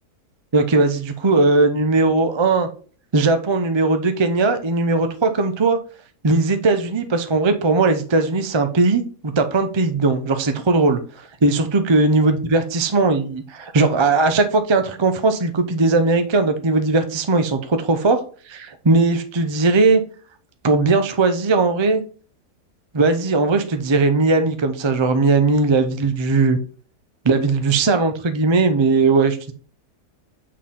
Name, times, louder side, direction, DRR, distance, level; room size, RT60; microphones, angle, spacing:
voice 1, 0.5-2.7 3.1-5.8 6.2-11.0 11.4-18.2 18.5-20.0 20.6-22.0 22.9-26.6 27.2-29.5, right 3 dB, 40° right, 7 dB, 0.4 m, -18 dB
6.5 x 4.0 x 3.7 m, 0.40 s
omnidirectional pair, 1.7 m